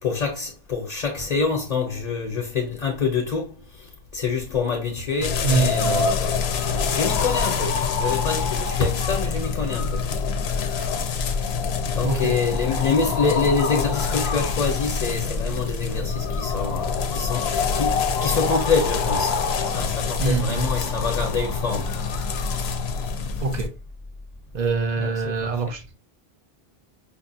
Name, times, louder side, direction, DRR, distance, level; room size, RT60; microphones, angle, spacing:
voice 1, 0.0-3.5 4.1-10.1 11.9-19.4 19.6-22.0 25.0-25.6, left 5 dB, 45° left, 0.8 m, -26 dB
sound 1, 5.2-23.7, left 5 dB, 85° left, 0.8 m, -25 dB
voice 2, 5.4-6.1 12.0-12.4 12.7-12.8 20.2-20.7 23.4-23.7 24.5-25.8, right 4 dB, 55° right, 0.6 m, -24 dB
5.2 x 2.3 x 2.6 m
omnidirectional pair, 1.0 m